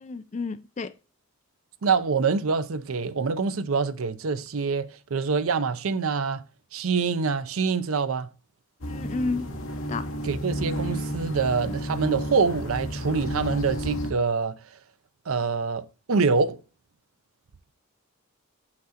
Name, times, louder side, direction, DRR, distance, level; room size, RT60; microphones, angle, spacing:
voice 1, 0.0-0.9 8.9-9.5 9.9-10.1, left 3 dB, 30° left, 0.3 m, -31 dB
voice 2, 1.8-6.4 6.7-8.3 10.2-14.6 15.3-16.6, right 5 dB, 75° right, 0.6 m, -25 dB
sound 1, 8.8-14.1, equal, 70° left, 1.1 m, -31 dB
7.5 x 5.8 x 2.8 m
head